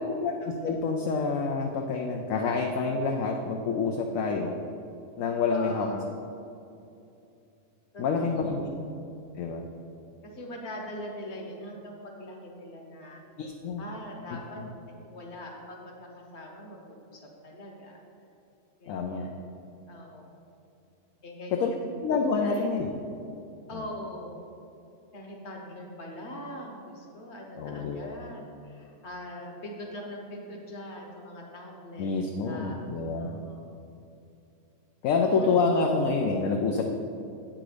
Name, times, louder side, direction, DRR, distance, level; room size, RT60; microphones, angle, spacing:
voice 1, 0.2-4.6 5.2-5.9 8.0-8.7 9.3-9.6 13.4-13.8 14.6-14.7 18.9-19.3 21.6-21.7 22.0-22.9 27.6-28.2 32.0-33.4 35.0-36.9, left 4 dB, 70° left, 3 dB, 1.0 m, -27 dB
voice 2, 5.5-6.0 7.9-8.8 10.2-13.2 13.8-14.6 14.9-18.0 18.8-19.3 19.9-20.4 21.2-22.0 22.4-22.7 23.7-24.4 25.1-32.9 33.2-33.8 35.2-35.5, left 1 dB, 50° left, 0 dB, 1.4 m, -42 dB
8.2 x 6.1 x 5.0 m, 2.7 s
omnidirectional pair, 1.6 m